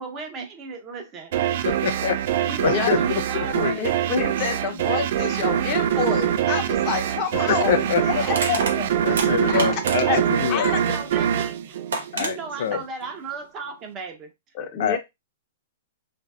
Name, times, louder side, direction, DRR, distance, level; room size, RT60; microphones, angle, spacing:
voice 1, 0.0-1.7 2.4-3.9 10.4-10.5 10.9-11.8 12.2-14.3, right 4 dB, 30° right, 0.7 m, -36 dB
sound 1, 1.3-12.6, right 10 dB, 60° right, 0.3 m, -24 dB
voice 2, 1.6-2.2 2.6-3.0 3.3-3.8 7.5-8.2 9.0-10.7 12.1-12.8 14.8-15.0, left 8 dB, 70° left, 0.4 m, -25 dB
voice 3, 3.8-9.1 9.4-9.8 10.1-10.2 10.5-11.0 14.5-15.0, left 6 dB, 40° left, 0.8 m, -28 dB
Crushing, 7.0-7.1 8.3-10.3 11.4-11.5 11.9-12.3, right 3 dB, 80° right, 0.9 m, -28 dB
3.0 x 2.6 x 2.4 m
hypercardioid pair, 125°, 0 cm